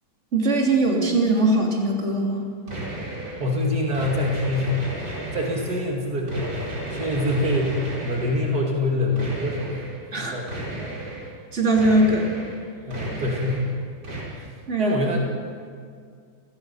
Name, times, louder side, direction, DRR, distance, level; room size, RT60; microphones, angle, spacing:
voice 1, 0.3-2.5 10.1-10.3 11.5-12.3 14.3-15.2, right 2 dB, 45° right, -1 dB, 3.4 m, -21 dB
sound 1, 2.7-3.5 3.9-5.8 6.3-8.6 9.2-10.0 10.5-11.3 11.7-12.6 12.9-13.7 14.0-14.2, right 1 dB, 85° right, 5.5 m, -33 dB
voice 2, 3.4-4.8 5.3-9.7 10.2-10.9 12.9-13.7 14.3-14.4 14.8-15.2, left 1 dB, 70° right, -2 dB, 3.0 m, -25 dB
28.0 x 19.5 x 5.7 m, 2.2 s
omnidirectional pair, 1.7 m